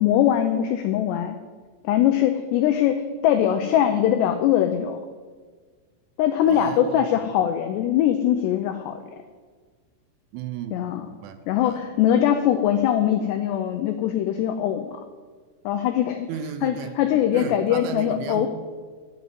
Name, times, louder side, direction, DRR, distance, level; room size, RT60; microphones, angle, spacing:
voice 1, 0.0-1.4 1.8-5.0 6.2-9.0 10.7-11.1 11.5-15.0 15.7-16.3 16.6-18.5, left 10 dB, 90° left, 7 dB, 2.4 m, -22 dB
voice 2, 6.5-7.3 10.3-11.9 16.3-17.0 17.3-18.5, right 9 dB, 80° right, 9 dB, 3.0 m, -35 dB
11.0 x 7.1 x 9.5 m, 1.5 s
omnidirectional pair, 5.8 m